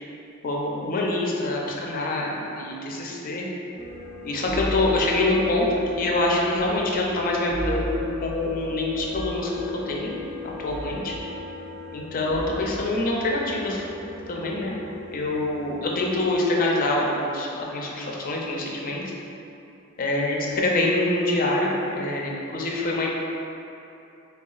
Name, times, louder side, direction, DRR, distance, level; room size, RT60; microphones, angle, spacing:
voice 1, 0.4-3.5 4.2-5.7 6.0-9.5 9.9-10.1 10.4-11.1 11.9-13.8 14.3-14.7 15.1-19.0 20.0-23.1, left 2 dB, 40° left, -2 dB, 0.4 m, -25 dB
sound 1, 3.8-16.3, left 2 dB, 55° right, 0.6 m, -35 dB
3.8 x 2.2 x 2.3 m, 2.8 s
head